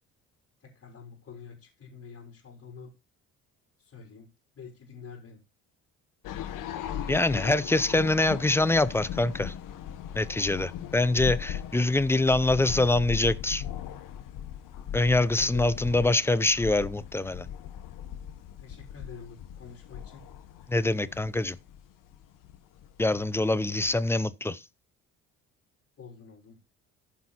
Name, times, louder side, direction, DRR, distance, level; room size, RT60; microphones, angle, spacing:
voice 1, 0.6-2.9 3.8-4.3 4.5-5.4 15.3-15.8 18.6-20.2 24.0-24.1 26.0-26.6, left 6 dB, 45° left, 4.3 m, -47 dB
sound 1, 6.2-24.2, left 10 dB, 70° left, 1.5 m, -38 dB
voice 2, 7.1-9.5 10.1-13.6 14.9-17.5 20.7-21.6 23.0-24.6, left 2 dB, 5° left, 0.7 m, -24 dB
14.5 x 5.5 x 4.3 m
supercardioid pair, 80°, 33 cm